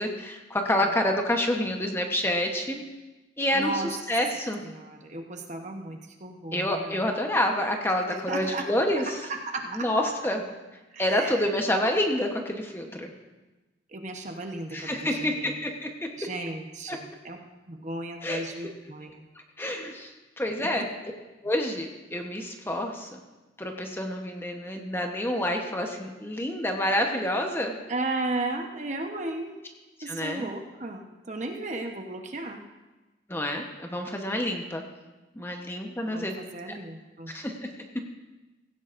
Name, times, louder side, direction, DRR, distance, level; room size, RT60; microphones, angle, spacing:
voice 1, 0.0-2.8 3.4-4.6 6.5-9.2 9.7-10.4 11.0-13.1 14.7-16.1 16.9-17.0 18.2-18.4 19.6-20.9 21.4-23.1 23.6-27.8 30.1-30.5 33.3-34.8 35.3-36.4 36.7-36.8 37.3-37.7, left 1 dB, 15° left, 3 dB, 1.0 m, -28 dB
voice 2, 3.5-3.9 4.6-7.1 8.1-8.7 9.0-9.9 10.9-11.5 13.9-15.6 16.2-17.4 17.7-19.3 20.6-20.8 27.9-29.5 30.0-32.6 36.1-37.3, right 2 dB, 40° right, 3 dB, 1.0 m, -35 dB
16.5 x 16.0 x 2.6 m, 1.1 s
head